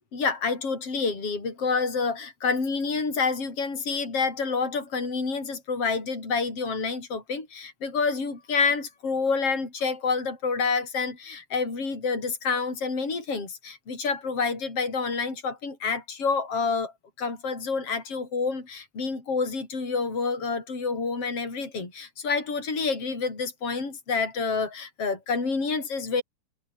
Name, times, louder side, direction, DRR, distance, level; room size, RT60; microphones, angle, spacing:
voice 1, 0.1-16.9 17.2-26.2, left 4 dB, 35° left, 7.5 m, -28 dB
omnidirectional pair, 4.4 m